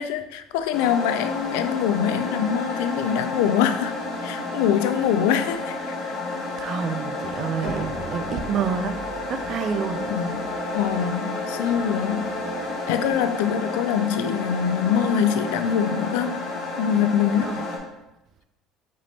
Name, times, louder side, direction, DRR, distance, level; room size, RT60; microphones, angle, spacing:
voice 1, 0.0-3.9 4.2-6.0 10.0-10.5 10.7-12.3 12.9-16.4 16.8-17.5, left 8 dB, 90° left, 10 dB, 0.3 m, -24 dB
sound 1, 0.7-17.8, left 2 dB, 60° left, 1.2 m, -31 dB
voice 2, 6.6-9.0 9.3-10.0 17.4-17.7, right 6 dB, 45° right, 9 dB, 0.4 m, -28 dB
sound 2, 7.6-13.2, right 1 dB, 90° right, 1.5 m, -39 dB
5.0 x 3.5 x 2.7 m, 0.94 s
cardioid pair, 120°, 0 cm